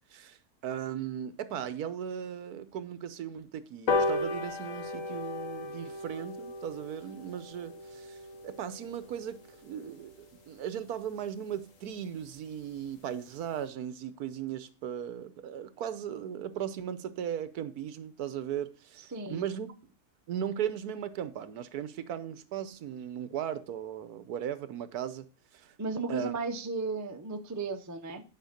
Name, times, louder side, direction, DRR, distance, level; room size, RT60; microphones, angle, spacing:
voice 1, 0.1-8.2 8.4-19.0 19.3-19.7 20.3-25.3 25.5-25.7 26.1-26.4, right 9 dB, 75° right, 1.3 m, -37 dB
sound 1, 3.9-10.6 11.0-11.1 11.5-11.6 11.8-11.9 12.2-12.3 12.6-12.9 13.3-13.4, left 3 dB, 55° left, 1.5 m, -35 dB
voice 2, 19.1-19.4 25.8-28.2, right 4 dB, 25° right, 0.4 m, -34 dB
9.3 x 5.3 x 5.1 m
omnidirectional pair, 1.7 m